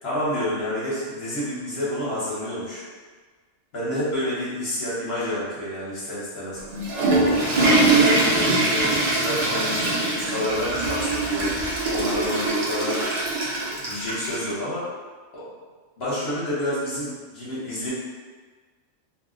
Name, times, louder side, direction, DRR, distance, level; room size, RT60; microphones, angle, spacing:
voice 1, 0.0-2.8 3.7-6.6 7.0-8.9 9.1-11.6 11.9-13.1 13.8-14.8 15.3-15.5 16.0-17.9, left 1 dB, 60° left, -9 dB, 1.1 m, -29 dB
Water / Toilet flush, 6.6-14.4, right 2 dB, 45° right, 0.5 m, -22 dB
2.6 x 2.0 x 3.7 m, 1.4 s
omnidirectional pair, 1.3 m